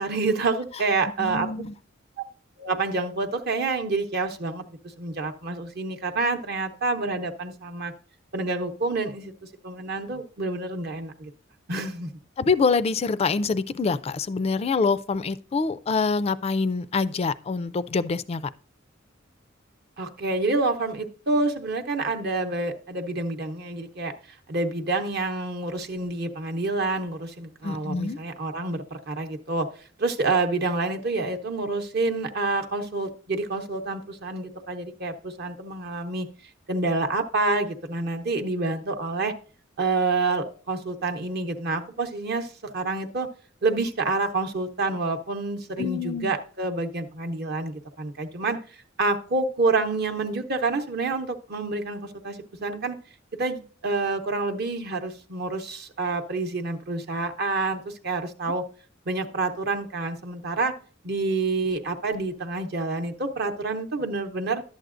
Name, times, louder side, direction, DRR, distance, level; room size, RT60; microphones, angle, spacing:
voice 1, 0.0-1.5 2.6-4.7 5.0-7.9 8.3-9.3 9.6-11.3 11.7-12.1 20.0-24.1 24.5-29.7 30.0-36.3 36.7-39.3 39.8-43.3 43.6-48.6 49.0-53.0 53.4-58.6 59.1-60.7 61.0-64.6, right 3 dB, 55° right, 0.8 m, -28 dB
voice 2, 1.2-1.7 12.4-18.5 27.6-28.2 45.8-46.3, left 4 dB, 30° left, 0.3 m, -25 dB
11.5 x 7.9 x 2.5 m
head